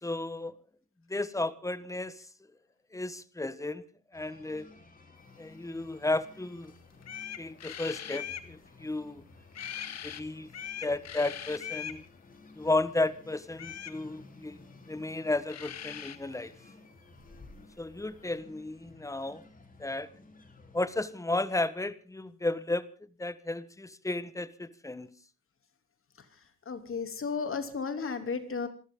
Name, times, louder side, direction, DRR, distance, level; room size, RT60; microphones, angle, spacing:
voice 1, 0.0-0.5 1.1-2.2 2.9-3.8 4.1-4.7 5.4-6.7 7.4-9.2 10.0-10.5 10.8-12.0 12.5-14.6 14.9-16.5 17.8-19.4 19.8-20.1 20.7-22.9 23.2-25.1, left 2 dB, 10° left, 15 dB, 1.4 m, -33 dB
sound 1, 4.1-21.0, left 3 dB, 25° left, 3.9 m, -55 dB
sound 2, 6.6-6.7 7.0-8.5 9.5-10.2 10.5-12.0 13.5-14.0 15.2-15.3 15.5-16.2, left 9 dB, 60° left, 1.8 m, -40 dB
voice 2, 26.2-28.7, left 5 dB, 45° left, 8 dB, 3.1 m, -34 dB
27.5 x 13.5 x 3.9 m, 0.37 s
cardioid pair, 90°, 30 cm